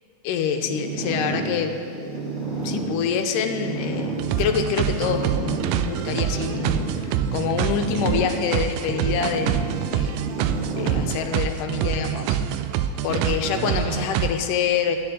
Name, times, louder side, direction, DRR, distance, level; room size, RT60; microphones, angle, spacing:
voice 1, 0.2-1.8 2.6-10.1 10.7-12.4 13.0-15.0, left 7 dB, 85° left, 5 dB, 2.4 m, -26 dB
sound 1, 0.6-11.1, right 3 dB, 25° right, 2.1 m, -31 dB
sound 2, 4.2-14.3, right 10 dB, 90° right, 2.2 m, -26 dB
12.0 x 7.0 x 9.8 m, 2.3 s
omnidirectional pair, 3.8 m